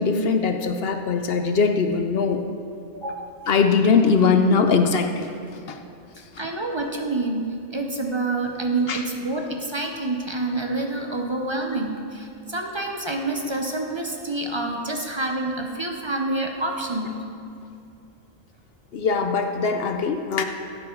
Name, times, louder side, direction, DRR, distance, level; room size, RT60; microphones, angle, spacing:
voice 1, 0.0-2.4 2.9-3.2 3.5-5.8 6.3-6.5 8.9-9.0 18.9-20.4, left 5 dB, 55° left, 7 dB, 0.8 m, -21 dB
voice 2, 6.4-17.2, right 2 dB, 25° right, 2 dB, 0.7 m, -27 dB
14.5 x 8.6 x 3.9 m, 2.6 s
omnidirectional pair, 1.4 m